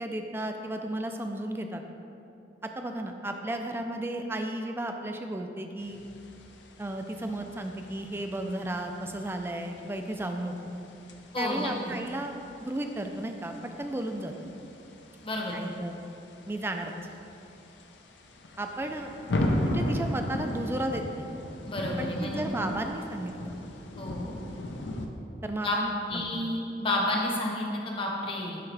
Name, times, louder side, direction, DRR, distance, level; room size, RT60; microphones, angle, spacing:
voice 1, 0.0-1.8 2.6-6.0 6.8-10.5 11.4-12.3 12.6-14.5 15.5-16.0 16.5-16.9 18.6-19.1 19.6-21.3 22.0-23.5 25.4-26.3, right 1 dB, 15° right, 4 dB, 0.3 m, -34 dB
sound 1, 5.8-25.1, left 1 dB, 85° left, 0.6 m, -37 dB
voice 2, 11.3-11.7 15.2-15.6 21.7-22.4 24.0-24.4 25.6-25.8 26.1-28.6, left 1 dB, 30° left, -2 dB, 0.9 m, -30 dB
10.5 x 3.6 x 3.3 m, 2.9 s
head